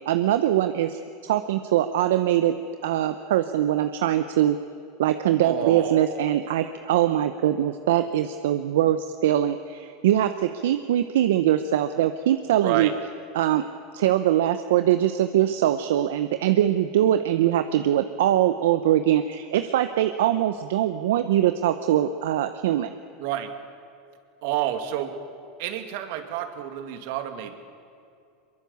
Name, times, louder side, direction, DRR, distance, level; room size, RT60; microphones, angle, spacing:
voice 1, 0.1-2.5 2.8-4.6 5.0-12.9 13.3-13.6 13.9-22.9, right 12 dB, 85° right, 9 dB, 0.9 m, -22 dB
voice 2, 5.4-6.4 12.6-12.9 23.2-23.5 24.4-25.2 25.6-27.5, right 11 dB, 70° right, 7 dB, 2.4 m, -29 dB
23.0 x 22.5 x 7.2 m, 2.5 s
supercardioid pair, 120°, 0 cm